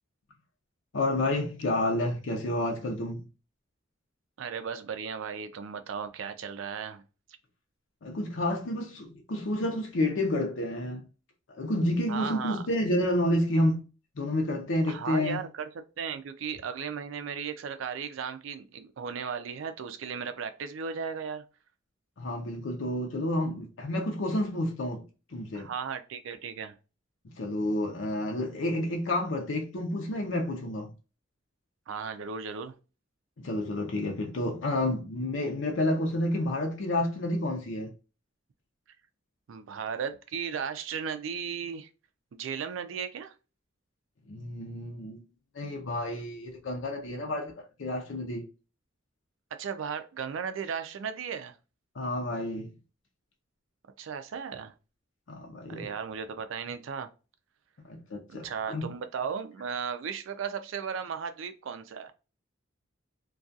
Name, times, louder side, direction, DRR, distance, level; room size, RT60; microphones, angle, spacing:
voice 1, 0.9-3.2 8.0-11.0 11.5-13.8 14.2-15.4 22.2-25.0 25.3-25.7 27.4-30.9 33.4-37.9 44.3-45.2 45.5-47.5 47.8-48.4 52.0-52.7 55.3-55.9 57.8-58.9, left 1 dB, 70° left, 0.6 m, -30 dB
voice 2, 4.4-7.0 12.1-12.6 14.9-15.7 16.0-21.4 25.5-26.8 31.9-32.7 39.5-41.9 42.3-43.3 49.5-51.5 54.0-54.7 55.7-57.1 58.3-62.1, right 6 dB, 70° right, 0.4 m, -36 dB
2.3 x 2.3 x 2.6 m
head